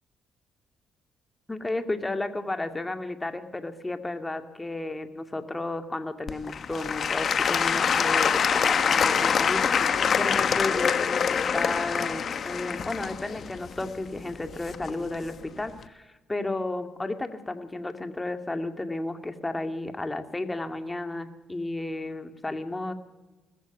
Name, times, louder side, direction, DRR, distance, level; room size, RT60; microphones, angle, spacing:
voice 1, 1.5-22.9, left 2 dB, 15° left, 7 dB, 2.2 m, -33 dB
Applause / Crowd, 6.3-15.2 15.8-15.9, left 7 dB, 50° left, 1.3 m, -25 dB
21.5 x 14.5 x 9.0 m, 1.2 s
cardioid pair, 90°, 0 cm